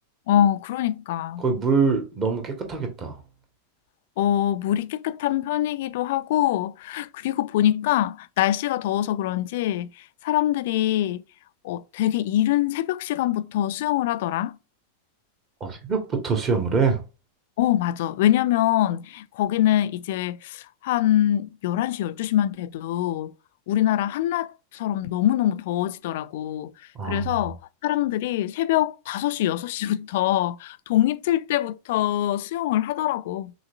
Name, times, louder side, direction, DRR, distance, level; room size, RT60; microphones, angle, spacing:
voice 1, 0.3-1.4 4.2-11.2 11.6-14.6 17.6-23.3 23.7-26.7 27.0-33.5, left 12 dB, 50° left, 0.3 m, -24 dB
voice 2, 1.4-3.2 15.6-17.0 27.0-27.4, right 5 dB, 30° right, 1.5 m, -24 dB
6.1 x 3.1 x 2.6 m
figure-of-eight pair, 90°, 0 cm